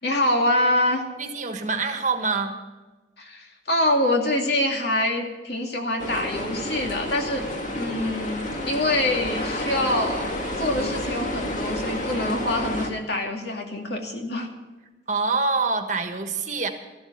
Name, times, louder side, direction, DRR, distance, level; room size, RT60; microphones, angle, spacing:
voice 1, 0.0-1.0 3.2-7.4 7.7-10.2 10.6-14.5, left 1 dB, 60° left, 2 dB, 2.5 m, -25 dB
voice 2, 1.2-2.5 15.1-16.7, right 4 dB, 40° right, 6 dB, 1.4 m, -25 dB
sound 1, 6.0-12.9, left 1 dB, 45° left, 1.9 m, -30 dB
14.0 x 13.0 x 5.5 m, 1.2 s
head